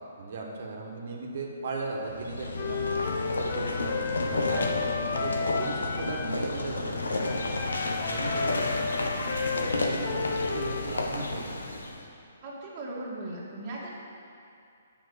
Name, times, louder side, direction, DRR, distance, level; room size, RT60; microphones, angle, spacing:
voice 1, 0.2-2.8 3.2-7.0 7.2-7.5 8.0-9.1 9.5-11.5, right 3 dB, 60° right, -1 dB, 1.4 m, -37 dB
sound 1, 2.0-12.0, left 2 dB, 85° left, 1.0 m, -31 dB
Wind instrument woodwind instrument, 2.5-6.4 7.2-10.9, left 5 dB, 55° left, 0.9 m, -32 dB
voice 2, 12.4-14.0, right 2 dB, 30° right, -7 dB, 1.9 m, -38 dB
7.7 x 5.8 x 6.8 m, 2.5 s
hypercardioid pair, 140°, 0 cm